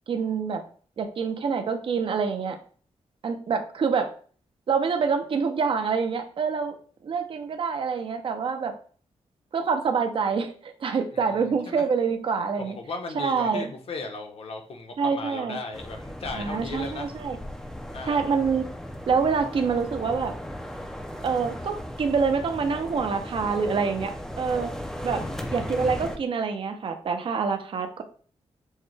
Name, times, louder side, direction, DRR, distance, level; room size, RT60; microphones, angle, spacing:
voice 1, 0.1-0.6 1.0-2.6 3.2-4.1 4.7-6.7 7.0-8.7 9.5-12.8 13.1-13.7 15.0-15.6 16.3-17.4 18.1-18.7 19.1-20.3 21.2-24.7 25.0-25.2 25.5-28.0, right 5 dB, 50° right, 6 dB, 0.5 m, -26 dB
voice 2, 12.6-17.1 17.9-18.4 25.1-25.7, left 3 dB, 60° left, 4 dB, 0.8 m, -36 dB
sound 1, 15.7-26.2, equal, 5° left, 0.4 m, -37 dB
6.4 x 2.1 x 3.2 m, 0.44 s
wide cardioid pair, 165°, 11 cm